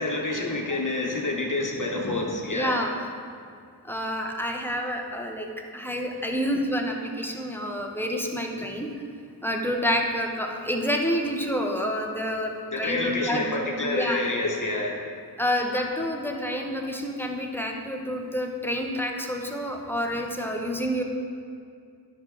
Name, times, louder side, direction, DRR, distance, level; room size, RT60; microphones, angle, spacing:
voice 1, 0.0-2.8 12.7-15.0, left 2 dB, 50° left, -1 dB, 1.2 m, -28 dB
voice 2, 2.5-3.1 3.8-8.9 9.4-14.2 15.4-21.0, equal, 5° left, 1 dB, 0.9 m, -28 dB
10.5 x 6.6 x 3.8 m, 2.3 s
wide cardioid pair, 70°, 40 cm